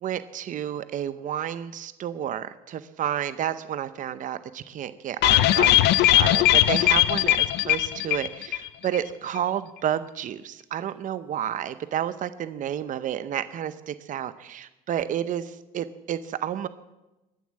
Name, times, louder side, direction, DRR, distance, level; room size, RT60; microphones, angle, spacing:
voice 1, 0.0-16.7, right 10 dB, 50° right, 13 dB, 0.7 m, -31 dB
sound 1, 5.2-8.7 8.9-9.0 9.4-9.5, left 15 dB, 80° left, 0.6 m, -19 dB
21.0 x 7.3 x 7.6 m, 1.0 s
cardioid pair, 110°, 17 cm